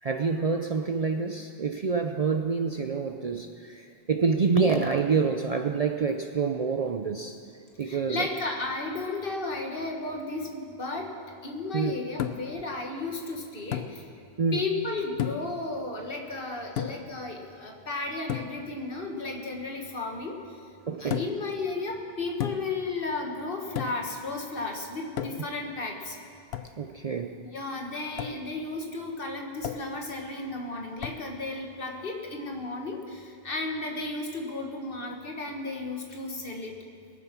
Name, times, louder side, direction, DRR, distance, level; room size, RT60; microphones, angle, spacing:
voice 1, 0.0-7.4 7.8-8.3 11.7-11.9 14.4-14.6 20.9-21.2 26.8-27.4, right 5 dB, 45° right, 5 dB, 0.5 m, -27 dB
voice 2, 7.8-11.1 11.4-14.1 14.5-20.6 21.0-26.2 27.5-36.7, left 3 dB, 55° left, 2 dB, 1.7 m, -34 dB
sound 1, 12.2-12.6 13.7-14.0 15.2-15.6 16.8-17.1 18.3-18.6 21.1-21.5 22.4-22.8 23.8-24.1 25.2-25.6 26.5-26.8 28.2-28.4 29.6-30.0 31.0-31.3, left 10 dB, 70° left, 0.9 m, -33 dB
21.0 x 7.5 x 6.0 m, 2.4 s
omnidirectional pair, 1.1 m